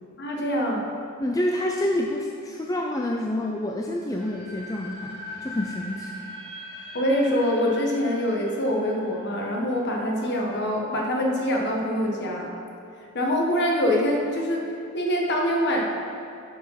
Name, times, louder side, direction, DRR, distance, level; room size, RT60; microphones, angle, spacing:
voice 1, 0.2-0.9 6.9-12.5 13.1-14.6 14.9-15.8, equal, 50° left, -1 dB, 1.4 m, -24 dB
voice 2, 1.2-6.1, left 1 dB, 15° left, 0 dB, 0.4 m, -28 dB
sound 1, 4.0-10.9, left 1 dB, 25° right, 2.5 m, -41 dB
9.8 x 5.4 x 5.8 m, 2.6 s
head